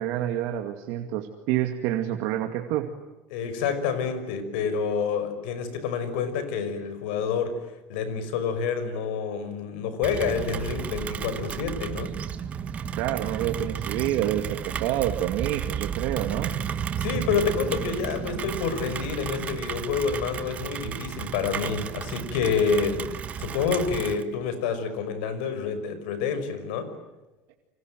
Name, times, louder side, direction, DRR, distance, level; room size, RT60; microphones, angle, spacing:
voice 1, 0.0-2.9 12.9-16.6, right 12 dB, 60° right, 5 dB, 2.3 m, -28 dB
voice 2, 3.3-7.6 7.9-12.1 17.0-26.9, left 6 dB, 85° left, 11 dB, 6.0 m, -28 dB
Rain, 10.0-24.2, right 8 dB, 25° right, 1.4 m, -33 dB
30.0 x 25.5 x 7.8 m, 1.1 s
cardioid pair, 165°, 5 cm